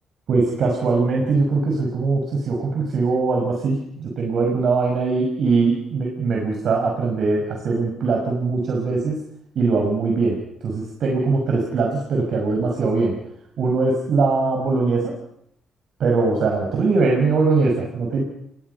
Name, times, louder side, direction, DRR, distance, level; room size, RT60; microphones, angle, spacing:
voice 1, 0.3-9.2 9.6-13.2 13.6-15.2 16.0-18.2, right 3 dB, 65° right, 1 dB, 5.7 m, -21 dB
29.5 x 23.0 x 5.7 m, 0.75 s
cardioid pair, 90°, 0 cm